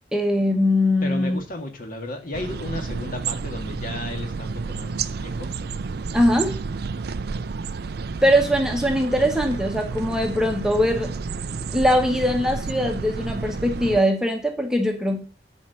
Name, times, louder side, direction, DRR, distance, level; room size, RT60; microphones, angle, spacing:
voice 1, 0.1-1.4 6.1-6.6 8.2-11.1 11.7-15.2, equal, 5° right, 3 dB, 1.1 m, -21 dB
voice 2, 1.0-5.5, left 2 dB, 50° left, 4 dB, 1.9 m, -34 dB
sound 1, 2.3-14.0, right 4 dB, 60° right, 0.5 m, -31 dB
10.5 x 4.5 x 6.8 m, 0.38 s
head